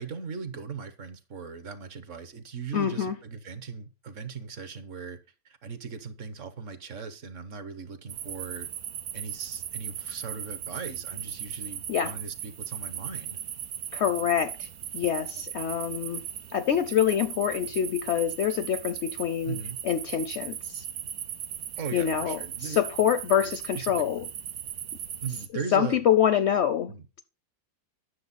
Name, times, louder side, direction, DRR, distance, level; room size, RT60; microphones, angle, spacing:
voice 1, 0.0-5.2 5.4-8.7 9.1-13.4 19.4-19.8 21.8-22.8 23.4-24.3 25.2-26.0 26.9-27.1, right 5 dB, 60° right, 1.3 m, -39 dB
voice 2, 2.7-3.2 11.9-12.1 13.9-16.2 16.5-19.6 19.8-20.9 21.9-24.3 25.7-27.2, left 9 dB, 65° left, 0.7 m, -26 dB
sound 1, 8.1-25.5, right 10 dB, 90° right, 1.3 m, -38 dB
9.7 x 6.6 x 4.1 m
omnidirectional pair, 1.5 m